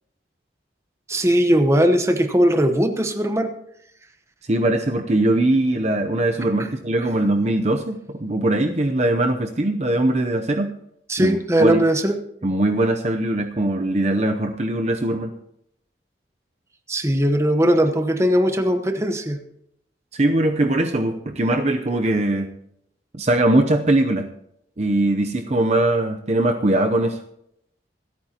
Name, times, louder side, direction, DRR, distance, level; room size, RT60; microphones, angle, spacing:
voice 1, 1.1-3.5 6.6-6.7 11.1-12.2 16.9-19.4, equal, 15° right, 7 dB, 1.0 m, -19 dB
voice 2, 4.4-10.7 11.2-11.8 12.4-15.3 20.1-22.5 23.1-24.3 24.8-27.2, right 1 dB, 40° right, 5 dB, 0.7 m, -21 dB
26.5 x 8.9 x 2.9 m, 0.75 s
head